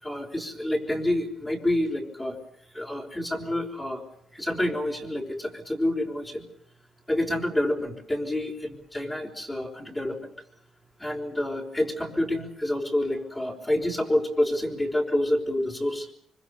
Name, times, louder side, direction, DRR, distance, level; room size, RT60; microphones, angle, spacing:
voice 1, 0.0-2.4 2.7-4.0 4.3-6.4 7.1-10.3 11.0-16.1, left 1 dB, 15° left, -1 dB, 5.1 m, -28 dB
25.0 x 25.0 x 7.0 m, 0.66 s
cardioid pair, 110°, 0 cm